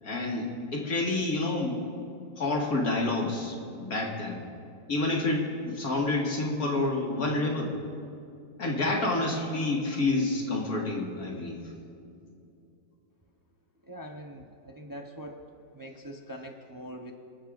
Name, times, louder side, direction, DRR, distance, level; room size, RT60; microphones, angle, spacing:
voice 1, 0.0-1.8 2.4-4.4 4.9-7.7 8.6-11.6, left 2 dB, 70° left, -1 dB, 2.4 m, -28 dB
voice 2, 13.8-15.4 15.7-17.1, equal, 15° right, 2 dB, 0.8 m, -43 dB
27.5 x 13.0 x 2.6 m, 2.6 s
omnidirectional pair, 1.6 m